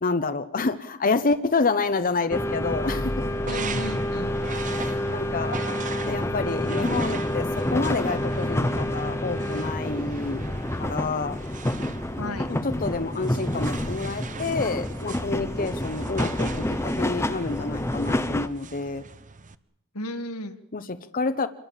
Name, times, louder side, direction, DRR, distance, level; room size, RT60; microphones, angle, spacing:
voice 1, 0.0-3.3 4.5-5.6 6.0-10.5 10.8-11.4 12.5-19.0 20.7-21.5, left 3 dB, 40° left, 9 dB, 0.9 m, -28 dB
sound 1, 2.3-18.5, left 1 dB, 10° left, 0.9 m, -28 dB
sound 2, 3.3-19.5, right 5 dB, 35° right, 0.9 m, -40 dB
voice 2, 3.4-4.3 12.2-12.5 19.9-20.6, left 1 dB, 85° left, 7 dB, 1.9 m, -34 dB
27.0 x 22.0 x 7.4 m, 0.82 s
head